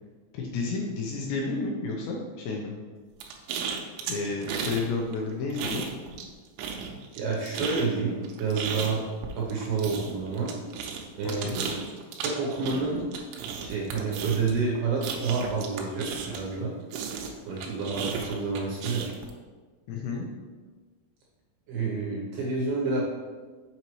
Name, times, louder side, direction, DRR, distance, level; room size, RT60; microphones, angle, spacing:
voice 1, 0.3-2.7 4.0-5.9 11.2-11.6 19.9-20.3, left 3 dB, 80° left, -1 dB, 2.7 m, -31 dB
sound 1, 3.2-4.9 5.1-6.3 6.6-16.6 16.9-19.3, right 6 dB, 90° right, 3.3 m, -35 dB
voice 2, 7.2-9.0 9.4-10.6 11.2-11.6 12.2-13.0 13.6-16.7 17.5-19.1 21.7-23.0, right 4 dB, 75° right, -4 dB, 2.5 m, -29 dB
7.2 x 5.9 x 3.1 m, 1.4 s
omnidirectional pair, 5.6 m